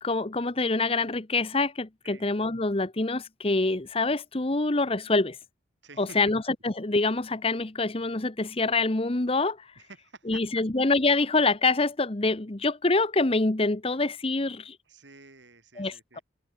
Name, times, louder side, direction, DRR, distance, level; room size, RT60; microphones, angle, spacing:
voice 1, 0.0-5.4 6.0-9.7 10.3-14.8 15.8-16.2, left 3 dB, 30° left, 1.0 m, -26 dB
voice 2, 5.8-6.2 9.8-10.6 14.9-16.2, right 3 dB, 70° right, 4.5 m, -50 dB
head